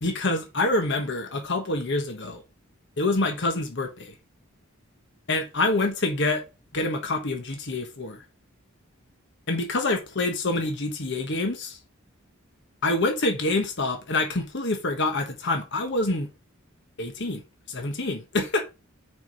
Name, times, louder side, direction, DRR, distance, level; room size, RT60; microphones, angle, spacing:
voice 1, 0.0-2.4 3.0-4.1 5.3-6.4 6.7-8.2 9.5-11.8 12.8-16.3 17.0-17.4 17.7-18.6, left 2 dB, 60° left, 1.3 m, -26 dB
6.4 x 5.1 x 5.2 m
head